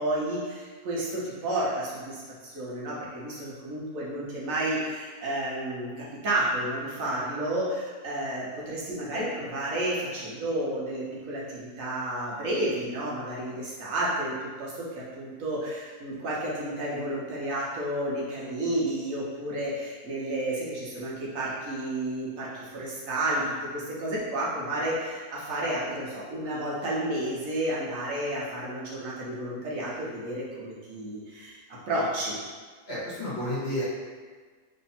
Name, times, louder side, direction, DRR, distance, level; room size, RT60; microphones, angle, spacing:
voice 1, 0.0-32.3, right 1 dB, 65° right, -6 dB, 1.2 m, -31 dB
voice 2, 32.9-33.8, left 1 dB, 45° left, -8 dB, 1.2 m, -31 dB
3.3 x 2.7 x 4.2 m, 1.5 s
omnidirectional pair, 1.6 m